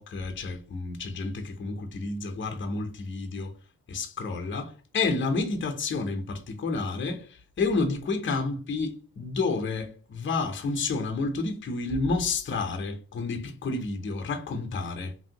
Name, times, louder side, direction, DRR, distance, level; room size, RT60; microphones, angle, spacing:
voice 1, 0.0-3.5 3.9-15.1, left 3 dB, 35° left, 0.6 m, -30 dB
3.0 x 2.6 x 2.8 m
wide cardioid pair, 140°, 36 cm